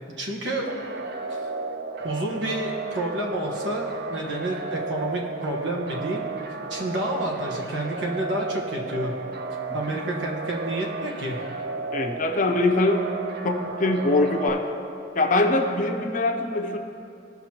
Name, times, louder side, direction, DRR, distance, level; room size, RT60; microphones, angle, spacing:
voice 1, 0.2-0.7 1.3-1.5 2.0-6.2 6.7-9.1 9.7-11.4, right 1 dB, 75° right, -1 dB, 1.4 m, -29 dB
sound 1, 0.7-14.5, right 3 dB, 60° right, 0.6 m, -33 dB
voice 2, 11.9-13.0 13.4-14.6 15.1-16.8, left 2 dB, 45° left, 4 dB, 0.7 m, -23 dB
17.0 x 6.0 x 2.9 m, 2.7 s
head